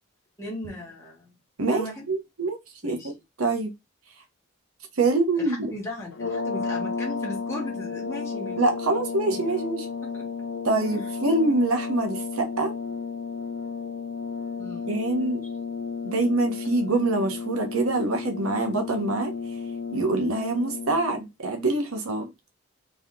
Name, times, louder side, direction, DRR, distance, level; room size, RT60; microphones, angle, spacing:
voice 1, 0.4-1.3 1.7-2.1 2.8-3.1 5.4-9.6 10.0-10.3 14.6-14.9, left 1 dB, 15° left, 1.2 m, -37 dB
voice 2, 1.6-2.6 2.8-3.0 3.4-3.7 5.0-5.7 8.6-9.9 10.6-12.7 14.9-15.4 16.0-19.3 19.9-22.3, right 2 dB, 85° right, 0.9 m, -25 dB
sound 1, 6.1-21.2, left 5 dB, 55° left, 0.6 m, -33 dB
3.2 x 2.8 x 3.6 m
head